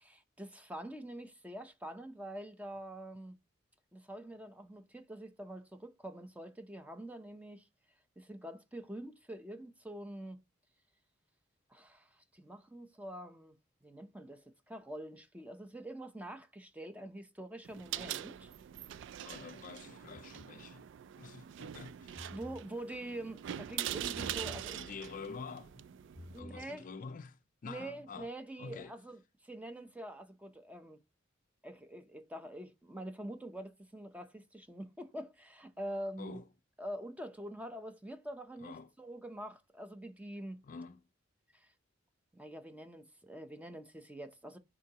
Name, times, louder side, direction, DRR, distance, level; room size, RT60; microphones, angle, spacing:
voice 1, 0.0-3.4 3.9-7.6 8.2-10.4 11.7-13.5 13.8-18.5 22.3-24.8 26.3-26.8 27.6-31.0 31.6-36.4 36.8-40.6 41.5-41.7 42.3-44.6, right 1 dB, 5° right, 0.6 m, -45 dB
sound 1, 17.6-26.4, right 10 dB, 65° right, 0.3 m, -43 dB
voice 2, 19.2-20.9 21.2-22.3 24.7-25.9 26.3-28.3 28.6-28.9 36.2-36.4 38.6-38.9 40.6-41.0, left 5 dB, 40° left, 0.4 m, -47 dB
sound 2, 20.1-20.6 22.0-22.7 24.1-24.7 26.0-26.7, left 1 dB, 40° right, 3.8 m, -50 dB
10.0 x 3.7 x 2.9 m
head